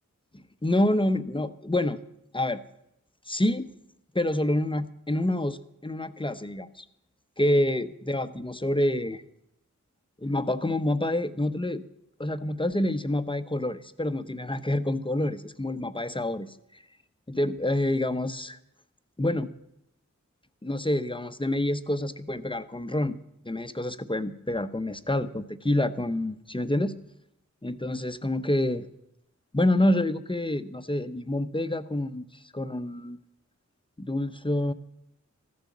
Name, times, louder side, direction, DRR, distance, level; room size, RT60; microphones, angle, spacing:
voice 1, 0.3-2.0 2.3-2.6 3.3-3.7 4.1-6.8 7.4-9.2 10.2-11.8 12.2-16.5 17.3-18.6 19.2-19.5 20.6-23.2 23.4-26.9 27.6-28.9 29.5-32.3 32.5-33.2 34.0-34.7, left 1 dB, 15° left, 11 dB, 0.8 m, -27 dB
14.0 x 9.1 x 7.2 m, 0.81 s
cardioid pair, 45°, 31 cm